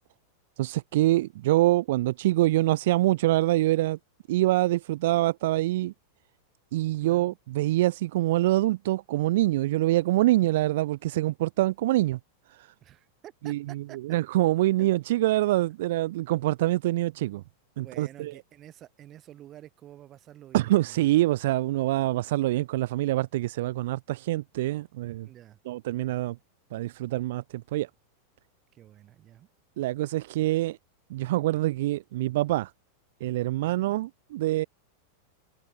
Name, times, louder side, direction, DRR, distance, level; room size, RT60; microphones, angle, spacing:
voice 1, 0.6-4.0 4.3-5.9 6.7-12.2 12.6-12.7 13.4-17.4 17.8-18.3 20.5-25.3 25.7-26.4 26.7-27.4 27.7-27.9 29.8-30.8 31.1-32.7 33.2-34.7, right 16 dB, 55° right, 0.3 m, -25 dB
voice 2, 7.0-7.4 12.8-14.0 14.8-14.9 17.8-21.1 25.2-25.6 28.7-29.5, right 12 dB, 30° right, 3.3 m, -49 dB
figure-of-eight pair, 90°, 0 cm